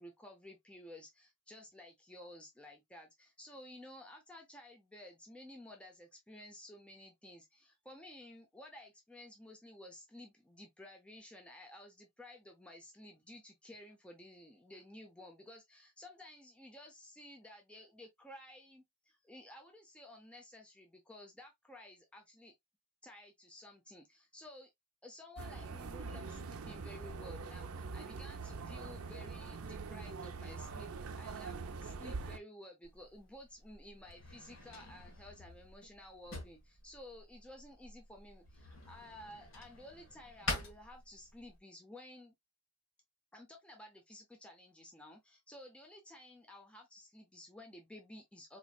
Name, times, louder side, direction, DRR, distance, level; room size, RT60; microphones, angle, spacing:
voice 1, 0.0-22.5 23.0-24.7 25.0-31.6 31.8-42.3 43.3-48.6, left 1 dB, 5° left, 0.5 m, -54 dB
sound 1, 25.4-32.4, right 4 dB, 75° right, 0.6 m, -43 dB
Drawer open or close, 32.8-41.6, left 2 dB, 60° left, 1.5 m, -47 dB
4.1 x 3.0 x 2.3 m
head